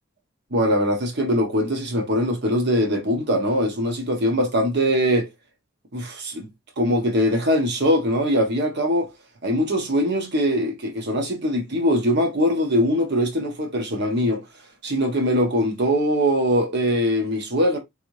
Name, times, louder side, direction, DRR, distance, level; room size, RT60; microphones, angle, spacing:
voice 1, 0.5-5.3 5.9-6.5 6.8-9.1 9.4-14.4 14.8-17.8, equal, 60° right, 1.1 m, -22 dB
3.3 x 2.7 x 3.1 m
head